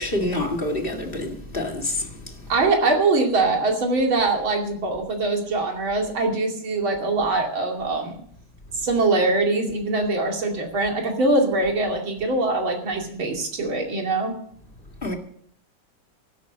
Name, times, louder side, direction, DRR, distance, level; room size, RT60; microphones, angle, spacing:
voice 1, 0.0-2.5 15.0-15.1, left 1 dB, 30° left, 2.1 m, -27 dB
voice 2, 2.5-8.2 8.8-14.3, right 2 dB, 85° right, 3.4 m, -23 dB
14.5 x 12.5 x 5.3 m
omnidirectional pair, 2.2 m